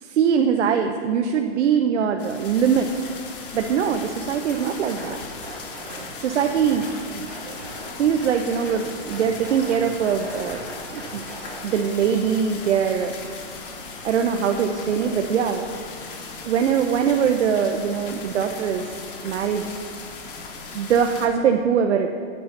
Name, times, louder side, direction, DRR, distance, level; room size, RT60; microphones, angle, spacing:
voice 1, 0.0-2.9 3.5-5.2 6.2-6.9 7.1-7.6 8.0-10.6 10.9-11.2 11.6-13.4 14.0-15.7 16.5-19.0 19.2-19.7 20.7-22.2, right 7 dB, 75° right, 5 dB, 0.6 m, -22 dB
sound 1, 2.2-21.3, left 4 dB, 50° left, 1.1 m, -38 dB
sound 2, 4.5-5.1 5.4-6.1 6.3-7.0 7.3-7.9 8.2-8.8 9.1-9.8 10.0-11.6, right 1 dB, 5° right, 0.4 m, -39 dB
8.5 x 6.4 x 5.6 m, 2.2 s
hypercardioid pair, 175°, 35 cm